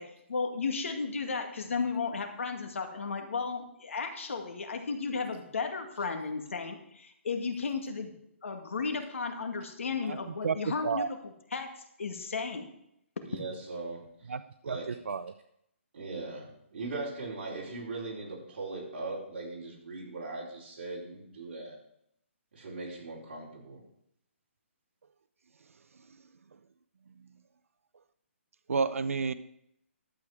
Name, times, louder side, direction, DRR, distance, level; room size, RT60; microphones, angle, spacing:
voice 1, 0.0-8.1 8.4-12.8 13.2-13.3, left 4 dB, 70° left, 5 dB, 2.0 m, -34 dB
voice 2, 13.3-14.0 14.6-14.9 15.9-21.8 22.5-23.8, right 3 dB, 45° right, -4 dB, 4.9 m, -39 dB
voice 3, 14.7-15.3 28.7-29.3, right 5 dB, 90° right, 13 dB, 0.6 m, -30 dB
12.0 x 8.4 x 4.8 m, 0.75 s
hypercardioid pair, 170°, 7 cm